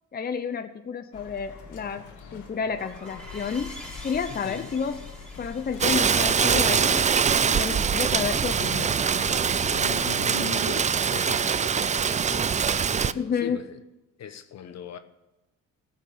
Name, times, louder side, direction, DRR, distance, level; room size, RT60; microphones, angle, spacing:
voice 1, 0.1-2.0 2.3-3.7 4.0-5.0 5.4-7.1 7.4-9.0 13.2-13.6, left 6 dB, 30° left, 0.8 m, -30 dB
sound 1, 1.1-10.0, left 5 dB, 90° left, 1.7 m, -43 dB
sound 2, 2.8-8.1, equal, 5° left, 3.5 m, -46 dB
voice 2, 4.3-4.8 7.7-8.1 9.7-12.5 12.9-13.8 14.2-15.0, left 7 dB, 60° left, 1.1 m, -39 dB
Rain, 5.8-13.1, right 6 dB, 25° right, 0.4 m, -23 dB
15.0 x 6.0 x 7.4 m
cardioid pair, 90°, 30 cm